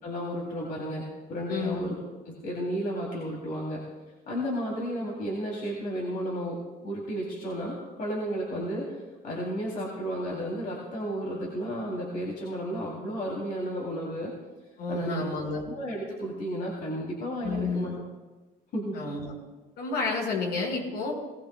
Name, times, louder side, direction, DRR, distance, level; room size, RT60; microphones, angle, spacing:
voice 1, 0.0-1.9 2.2-3.8 4.3-8.9 9.2-14.3 14.9-15.2 15.7-17.9 18.7-19.0, equal, 55° left, -3 dB, 3.2 m, -33 dB
voice 2, 1.5-1.8 14.8-15.6 17.4-17.9 18.9-19.3 19.8-21.1, left 3 dB, 75° left, -2 dB, 5.6 m, -30 dB
20.5 x 17.5 x 2.3 m, 1.2 s
cardioid pair, 110°, 17 cm